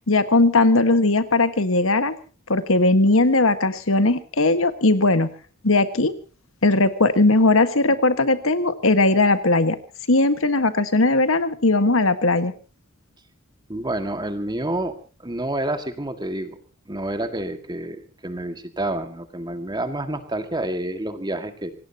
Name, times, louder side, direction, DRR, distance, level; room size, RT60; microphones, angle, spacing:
voice 1, 0.1-2.1 2.5-5.3 5.6-6.1 6.6-9.8 10.1-12.5, left 2 dB, 70° left, 11 dB, 1.6 m, -18 dB
voice 2, 13.7-14.9 15.2-16.6 16.9-21.7, right 1 dB, 20° right, 8 dB, 1.9 m, -28 dB
26.5 x 18.0 x 2.9 m, 0.35 s
head